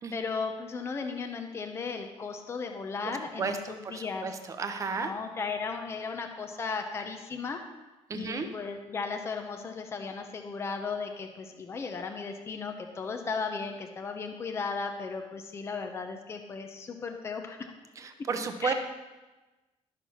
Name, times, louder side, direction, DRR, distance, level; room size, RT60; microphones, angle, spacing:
voice 1, 0.1-4.3 5.0-7.6 8.1-17.7 18.6-18.7, left 4 dB, 25° left, 4 dB, 0.8 m, -36 dB
voice 2, 3.0-5.1 8.1-8.5 18.0-18.7, right 5 dB, 30° right, 8 dB, 0.8 m, -33 dB
12.0 x 6.7 x 5.6 m, 1.1 s
cardioid pair, 175°, 11 cm